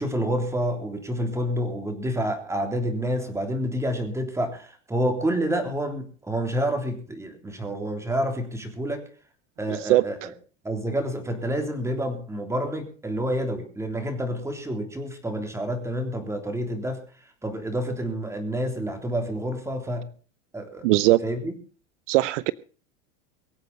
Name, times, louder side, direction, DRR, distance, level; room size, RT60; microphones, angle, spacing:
voice 1, 0.0-9.1 9.6-10.3 10.6-17.0 17.4-20.1 20.5-20.9 21.2-21.5, equal, 5° right, 5 dB, 3.4 m, -28 dB
voice 2, 9.7-10.0 20.8-21.2 22.1-22.5, right 18 dB, 75° right, 18 dB, 0.8 m, -20 dB
23.0 x 8.1 x 5.5 m, 0.40 s
supercardioid pair, 130°, 37 cm